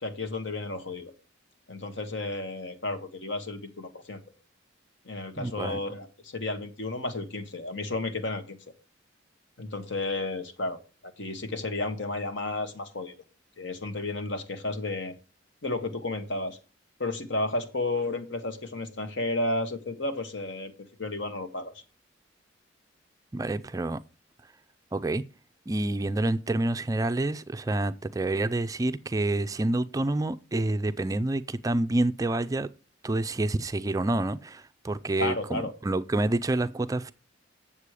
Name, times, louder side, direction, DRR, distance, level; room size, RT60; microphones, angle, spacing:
voice 1, 0.0-1.1 1.7-4.2 5.0-8.6 9.6-13.1 13.6-15.1 15.6-16.6 17.0-20.7 21.0-21.8 35.2-35.7, left 2 dB, 65° left, 1.5 m, -32 dB
voice 2, 5.4-5.8 23.3-24.0 24.9-25.2 25.7-32.7 33.0-37.1, right 2 dB, 20° right, 0.4 m, -28 dB
8.4 x 7.4 x 4.8 m
head